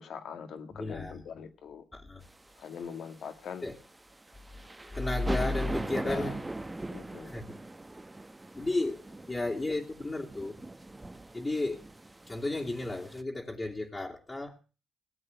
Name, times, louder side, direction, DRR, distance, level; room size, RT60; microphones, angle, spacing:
voice 1, 0.0-1.8 2.6-3.6 5.9-6.3 6.9-7.3 8.8-8.9, left 7 dB, 75° left, 2.0 m, -42 dB
voice 2, 0.7-1.2 1.9-2.2 3.6-3.8 4.9-6.4 7.3-7.5 8.5-10.6 11.3-11.8 12.3-14.6, left 2 dB, 30° left, 2.5 m, -33 dB
sound 1, 2.3-13.2, right 2 dB, 20° right, 1.3 m, -41 dB
18.0 x 7.9 x 8.0 m
supercardioid pair, 50°, 0 cm